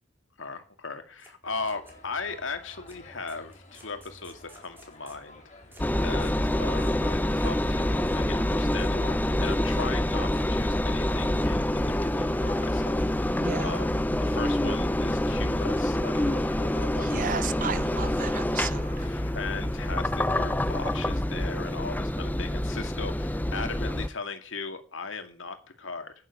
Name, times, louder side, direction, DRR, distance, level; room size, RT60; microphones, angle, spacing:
voice 1, 0.4-5.4 5.9-13.9 14.2-17.1 19.0-26.1, left 4 dB, 85° left, 2.2 m, -38 dB
sound 1, 1.2-1.3 1.6-2.3 2.9-3.0 3.3-5.3 5.7-5.9 6.2-6.4 6.8-7.0 7.4-7.6 7.9-8.2 8.8-9.0 9.4-9.9 10.3-10.5 11.1-11.5 11.8-12.5 12.9-13.8, right 2 dB, 10° right, 5.1 m, -58 dB
sound 2, 1.4-19.1, left 2 dB, 40° left, 4.1 m, -51 dB
Engine, 5.8-24.1, left 1 dB, 10° left, 0.6 m, -27 dB
voice 2, 13.4-13.8 16.9-19.1, right 6 dB, 45° right, 0.6 m, -34 dB
10.0 x 9.4 x 8.5 m
head